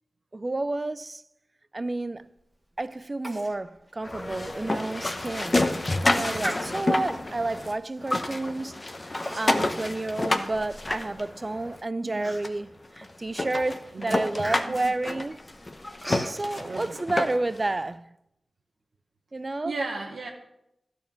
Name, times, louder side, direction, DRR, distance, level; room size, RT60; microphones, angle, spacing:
voice 1, 0.3-1.2 1.7-2.3 2.8-5.6 6.1-8.8 9.1-15.4 16.1-18.0 19.3-19.7, right 2 dB, 35° right, 0.4 m, -30 dB
Human voice, 3.2-3.6 3.9-4.0 4.5-4.6 5.2-5.4 6.4-7.1 7.9-8.1 9.1-9.7 10.1-11.2 11.6-11.7 12.2-12.8 13.3-13.5 13.8-16.4, equal, 5° right, 1.7 m, -38 dB
sound 1, 4.0-7.7 8.0-11.8 12.4-12.5 13.0-13.1 13.4-17.6, left 2 dB, 35° left, 0.8 m, -29 dB
voice 2, 16.6-17.0 19.6-20.3, right 3 dB, 85° right, 1.0 m, -35 dB
13.0 x 4.5 x 6.9 m
wide cardioid pair, 70°, 0 cm